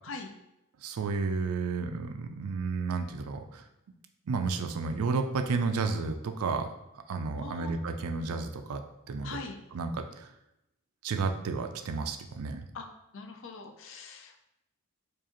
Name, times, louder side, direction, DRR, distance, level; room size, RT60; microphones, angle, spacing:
voice 1, 0.8-3.6 4.3-6.7 7.1-8.8 9.1-9.4 9.7-10.3 11.0-12.7, right 4 dB, 80° right, 7 dB, 0.4 m, -32 dB
voice 2, 7.4-7.7 9.2-9.6 12.7-12.9 13.1-14.4, left 4 dB, 60° left, 4 dB, 0.5 m, -42 dB
4.7 x 2.5 x 2.9 m, 0.87 s
head